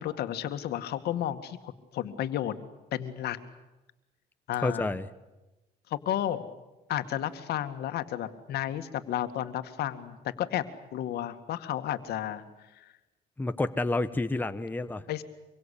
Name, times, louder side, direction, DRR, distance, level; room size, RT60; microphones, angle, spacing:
voice 1, 0.0-2.5 2.9-3.4 4.5-4.9 5.9-6.5 6.9-10.6 10.9-12.4 12.7-12.9 15.1-15.2, left 11 dB, 70° left, 9 dB, 2.1 m, -32 dB
voice 2, 4.6-5.1 13.4-15.0, left 2 dB, 10° left, 9 dB, 1.1 m, -29 dB
25.5 x 23.5 x 8.5 m, 1.1 s
cardioid pair, 110°, 17 cm